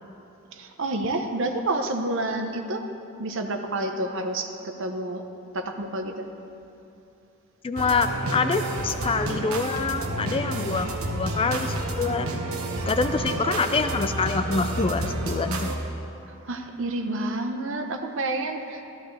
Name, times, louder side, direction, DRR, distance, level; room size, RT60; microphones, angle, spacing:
voice 1, 0.5-2.8 3.2-5.2 5.5-6.3 16.2-18.8, right 2 dB, 65° right, 5 dB, 0.9 m, -29 dB
voice 2, 7.6-12.4 12.8-15.7, left 4 dB, 25° left, 9 dB, 0.4 m, -26 dB
sound 1, 7.8-15.8, right 2 dB, 85° right, 1.1 m, -30 dB
14.0 x 13.5 x 3.4 m, 2.7 s
head